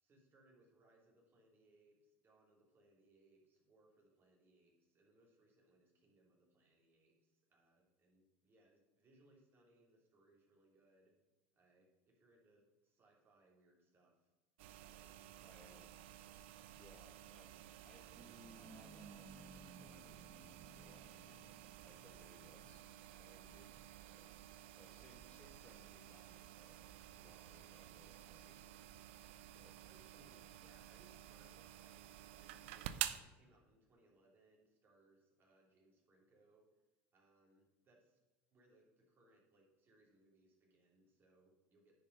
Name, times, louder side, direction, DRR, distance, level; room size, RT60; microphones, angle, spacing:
voice 1, 0.0-11.1 11.5-14.3 14.9-15.9 29.9-36.6 37.1-38.2 38.5-42.0, right 1 dB, 35° right, -1 dB, 2.8 m, -71 dB
sound 1, 14.6-33.2, right 12 dB, 80° right, 0.5 m, -51 dB
voice 2, 15.4-15.9 16.8-17.6 17.8-18.1 18.6-21.4 21.8-22.8 23.2-24.3 24.8-28.7 29.5-29.9, left 1 dB, 15° left, 1 dB, 1.7 m, -66 dB
sound 2, 18.2-23.9, right 2 dB, 20° right, 1.2 m, -61 dB
9.6 x 5.2 x 5.3 m, 1.1 s
supercardioid pair, 95°, 6 cm